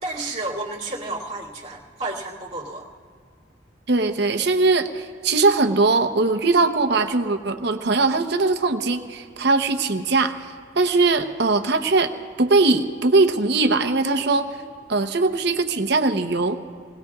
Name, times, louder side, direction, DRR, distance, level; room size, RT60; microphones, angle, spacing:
voice 1, 0.0-2.8, right 2 dB, 35° right, -6 dB, 2.5 m, -31 dB
voice 2, 3.9-12.1 12.4-14.5 14.9-16.6, right 3 dB, 60° right, 6 dB, 0.9 m, -20 dB
27.5 x 20.0 x 2.4 m, 2.2 s
head